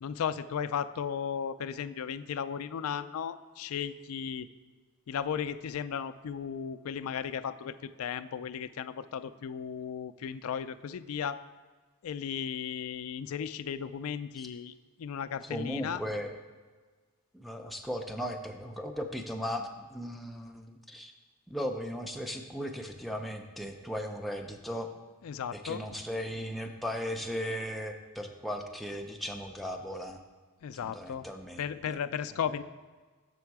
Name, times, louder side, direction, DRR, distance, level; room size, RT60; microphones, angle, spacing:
voice 1, 0.0-4.5 5.1-11.4 12.0-14.7 15.0-16.0 25.2-25.8 30.6-31.2 31.6-32.6, left 7 dB, 70° left, 11 dB, 0.3 m, -35 dB
voice 2, 15.4-16.3 17.3-21.1 21.5-24.9 25.5-30.2 30.8-31.6, equal, ahead, 3 dB, 0.5 m, -37 dB
6.9 x 6.4 x 4.7 m, 1.4 s
head